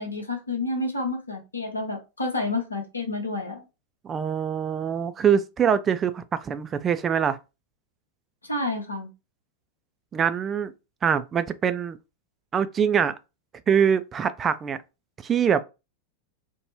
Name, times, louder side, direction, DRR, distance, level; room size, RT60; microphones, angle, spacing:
voice 1, 0.0-3.6 8.5-9.1, left 2 dB, 80° left, 0.8 m, -29 dB
voice 2, 4.0-7.4 10.1-10.7 11.0-12.0 12.5-13.2 13.7-14.8 15.2-15.6, right 7 dB, 20° right, 0.3 m, -23 dB
2.5 x 2.2 x 3.0 m
figure-of-eight pair, 90°, 0 cm